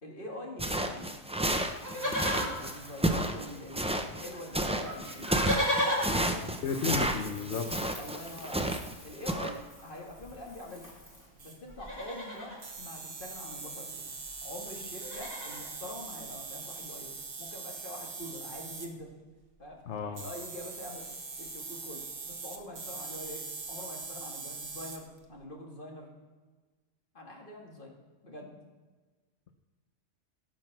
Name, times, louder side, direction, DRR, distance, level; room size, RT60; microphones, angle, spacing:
voice 1, 0.0-1.1 1.9-6.6 8.0-8.7 9.0-10.9 11.4-14.1 14.4-19.1 19.6-19.8 20.1-21.1 21.4-26.1 27.1-28.0 28.2-28.5, left 1 dB, 45° left, -1 dB, 2.5 m, -44 dB
sound 1, 0.6-8.9 9.3-9.5, right 1 dB, 5° right, 0.5 m, -31 dB
Livestock farm animals working animals, 1.7-3.7 4.0-4.1 4.3-11.3 11.7-12.6 13.8-13.9 14.1-14.4 14.7-15.7 16.3-16.4, equal, 15° left, 2.6 m, -37 dB
voice 2, 6.6-7.7 19.9-20.3, left 5 dB, 65° left, 4 dB, 1.2 m, -32 dB
sound 2, 8.7-8.9 11.0-11.1 11.4-12.0 12.6-18.9 20.1-25.2, right 4 dB, 55° right, 1.6 m, -42 dB
17.0 x 6.5 x 6.1 m, 1.3 s
omnidirectional pair, 1.3 m